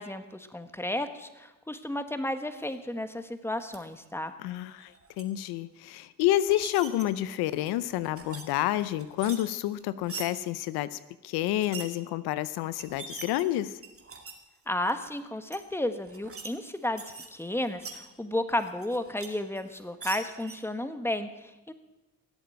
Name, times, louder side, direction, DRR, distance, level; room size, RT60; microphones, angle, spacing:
voice 1, 0.0-4.3 14.7-17.0 17.3-21.7, left 1 dB, 5° left, 9 dB, 1.4 m, -33 dB
sound 1, 3.6-3.8 4.7-5.2 6.2-7.0 7.5-8.4 8.7-10.3 11.5-11.9 12.5-12.6 12.8-14.4 14.8-15.1 15.5-15.6 16.0-16.5 16.8-18.0 18.6-19.3 19.6-20.6, right 4 dB, 35° right, 2.4 m, -43 dB
voice 2, 4.4-4.9 5.2-11.0 11.2-13.8, left 14 dB, 90° left, 16 dB, 0.6 m, -29 dB
16.5 x 8.0 x 7.9 m, 1.1 s
supercardioid pair, 60°, 37 cm